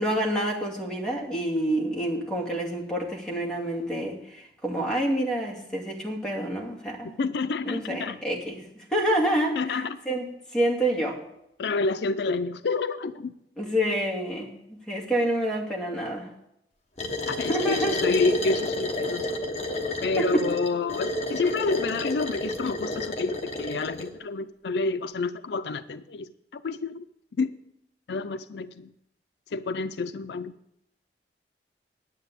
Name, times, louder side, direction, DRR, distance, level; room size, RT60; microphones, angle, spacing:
voice 1, 0.0-7.2 7.6-10.3 10.5-11.2 13.6-14.5 14.9-16.3 17.5-18.0 20.2-20.3, right 1 dB, 5° left, -2 dB, 2.2 m, -28 dB
voice 2, 7.2-8.2 9.6-10.0 11.6-13.3 17.3-19.4 20.0-27.1 27.4-27.5 28.1-28.9 29.5-30.5, left 3 dB, 75° left, 12 dB, 0.5 m, -28 dB
sound 1, 17.0-24.1, left 2 dB, 35° left, 1.2 m, -30 dB
9.9 x 8.0 x 8.2 m, 0.81 s
head